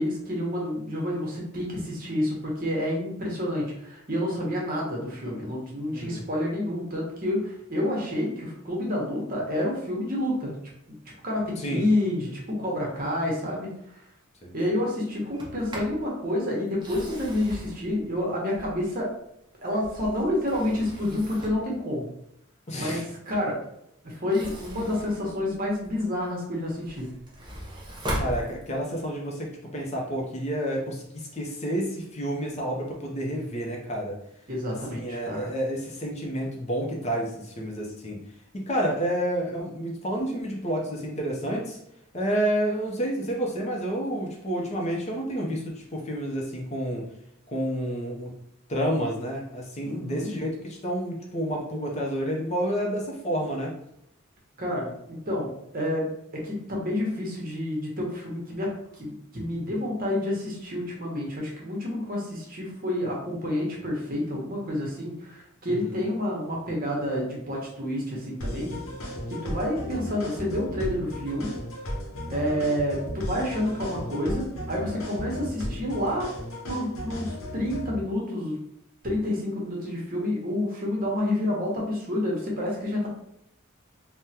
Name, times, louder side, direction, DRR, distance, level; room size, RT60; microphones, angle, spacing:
voice 1, 0.0-10.5 11.2-11.4 11.7-13.7 14.5-19.1 19.6-22.1 22.8-23.6 24.0-27.1 34.5-35.5 49.8-50.3 54.6-58.7 58.9-68.7 69.3-71.5 72.3-76.3 76.7-78.6 79.0-83.1, left 1 dB, 45° right, -2 dB, 0.9 m, -29 dB
voice 2, 5.9-6.2 11.6-11.9 12.2-12.4 14.4-14.5 22.7-23.0 28.2-34.2 35.0-38.2 38.5-41.8 42.1-47.1 47.5-48.3 48.7-53.7 65.7-66.0, equal, 30° left, -1 dB, 0.5 m, -29 dB
Sliding door, 15.2-16.0 16.7-19.0 19.6-21.7 24.1-26.1 26.5-29.0, equal, 20° right, 0.6 m, -38 dB
sound 1, 68.4-78.0, equal, 80° left, 0.8 m, -35 dB
3.5 x 2.1 x 2.8 m, 0.78 s
head